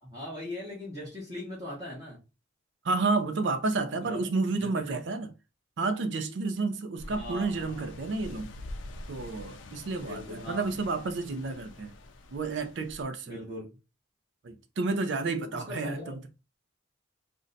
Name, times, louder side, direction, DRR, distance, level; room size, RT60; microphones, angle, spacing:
voice 1, 0.0-2.2 4.0-4.2 4.6-5.3 7.1-7.9 10.0-10.7 13.2-13.7 15.5-16.2, left 1 dB, 20° right, 0.9 m, -40 dB
voice 2, 2.8-5.3 5.8-8.5 9.1-11.9 12.3-13.3 14.4-16.2, right 3 dB, 60° right, 0.4 m, -30 dB
sound 1, 7.0-13.0, left 1 dB, 65° left, 0.5 m, -45 dB
2.6 x 2.1 x 3.8 m
head